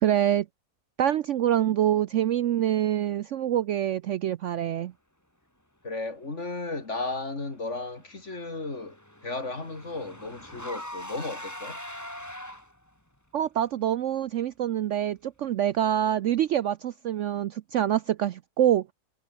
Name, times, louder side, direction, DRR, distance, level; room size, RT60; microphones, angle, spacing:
voice 1, 0.0-0.5 1.0-4.9 13.3-18.9, right 11 dB, 65° right, 0.8 m, -25 dB
voice 2, 5.8-9.0 9.2-11.8, left 3 dB, 50° left, 3.9 m, -34 dB
Car / Engine, 7.9-12.9, left 1 dB, 10° left, 3.9 m, -42 dB
omnidirectional pair, 1.6 m